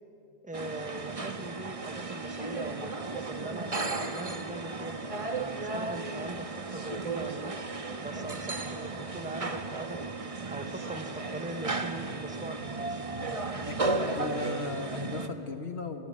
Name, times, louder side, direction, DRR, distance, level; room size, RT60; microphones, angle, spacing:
voice 1, 0.4-3.7 4.1-7.6 8.0-10.1 10.5-13.0, right 2 dB, 10° right, 9 dB, 1.1 m, -41 dB
sound 1, 0.5-15.3, right 3 dB, 35° right, 1.3 m, -35 dB
voice 2, 13.7-16.1, left 3 dB, 80° left, 7 dB, 1.9 m, -36 dB
26.5 x 20.5 x 7.7 m, 3.0 s
omnidirectional pair, 1.1 m